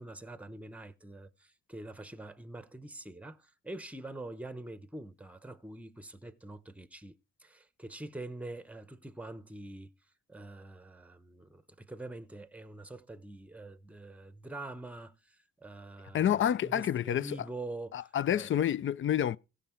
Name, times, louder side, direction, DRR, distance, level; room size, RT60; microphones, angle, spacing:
voice 1, 0.0-9.9 10.3-18.5, right 2 dB, 5° right, 0.9 m, -45 dB
voice 2, 16.1-17.4 17.9-19.4, left 10 dB, 40° left, 0.5 m, -28 dB
16.0 x 5.6 x 4.4 m
cardioid pair, 90°, 30 cm